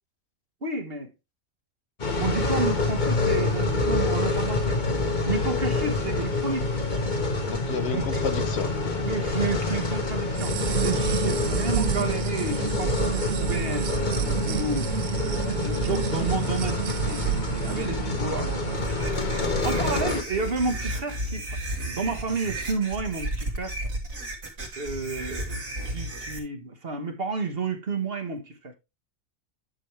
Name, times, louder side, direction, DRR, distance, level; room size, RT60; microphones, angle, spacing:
voice 1, 0.6-1.1 2.2-4.8 5.3-6.7 7.3-7.4 7.9-8.2 9.1-18.9 19.6-21.6 21.9-23.8 24.8-28.7, right 3 dB, 45° right, 1.6 m, -31 dB
sound 1, 2.0-20.2, left 3 dB, 35° left, 1.4 m, -27 dB
voice 2, 7.4-9.0 19.4-19.6, left 7 dB, 60° left, 0.8 m, -32 dB
sound 2, 10.3-19.0, right 11 dB, 65° right, 0.9 m, -30 dB
sound 3, 18.8-26.4, right 1 dB, 85° right, 2.8 m, -33 dB
10.5 x 6.5 x 3.3 m
omnidirectional pair, 1.4 m